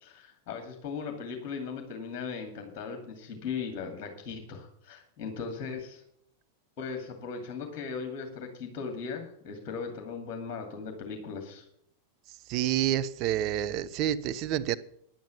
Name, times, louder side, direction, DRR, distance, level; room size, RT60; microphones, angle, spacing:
voice 1, 0.0-6.0 6.8-11.7, left 5 dB, 40° left, 4 dB, 2.5 m, -38 dB
voice 2, 12.5-14.8, right 11 dB, 40° right, 11 dB, 0.7 m, -28 dB
10.5 x 9.4 x 7.1 m, 0.70 s
figure-of-eight pair, 90°, 0 cm